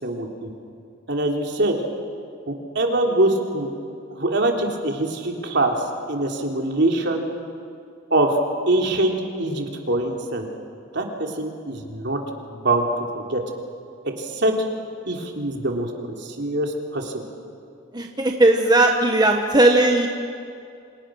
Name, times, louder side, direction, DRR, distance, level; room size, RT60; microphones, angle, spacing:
voice 1, 0.0-0.5 1.1-1.8 2.5-3.7 4.1-7.2 8.1-8.4 8.7-10.5 10.9-12.2 12.5-12.9 13.1-13.4 14.0-14.6 15.1-17.2, right 2 dB, 55° right, 2 dB, 3.3 m, -23 dB
voice 2, 17.9-20.1, right 2 dB, 20° right, 2 dB, 1.3 m, -17 dB
29.0 x 27.0 x 6.4 m, 2.5 s
head